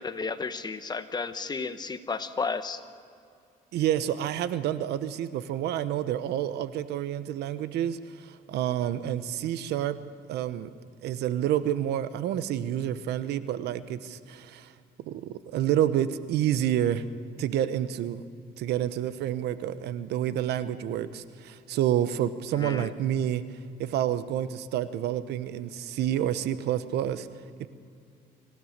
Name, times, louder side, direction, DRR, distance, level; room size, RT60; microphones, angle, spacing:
voice 1, 0.0-2.8 22.5-22.9, left 4 dB, 25° left, 10 dB, 1.2 m, -33 dB
voice 2, 3.7-10.0 10.3-10.7 11.0-14.7 15.1-17.0 17.4-18.2 18.6-23.4 23.8-27.3 27.6-27.7, right 11 dB, 75° right, 13 dB, 1.0 m, -29 dB
25.5 x 16.0 x 6.7 m, 2.5 s
cardioid pair, 110°, 17 cm